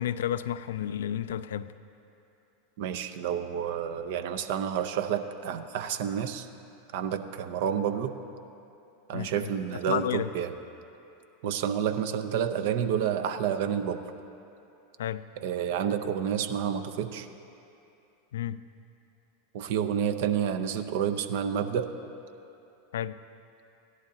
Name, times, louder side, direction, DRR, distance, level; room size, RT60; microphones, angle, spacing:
voice 1, 0.0-1.7 9.1-9.5 9.9-10.3 15.0-15.2 18.3-18.6 22.9-23.2, left 10 dB, 75° left, 14 dB, 0.3 m, -31 dB
voice 2, 2.8-6.5 6.9-8.1 9.1-10.5 11.4-14.0 15.4-17.3 19.5-21.9, right 8 dB, 65° right, 9 dB, 0.6 m, -29 dB
16.0 x 11.5 x 2.7 m, 2.8 s
hypercardioid pair, 90°, 0 cm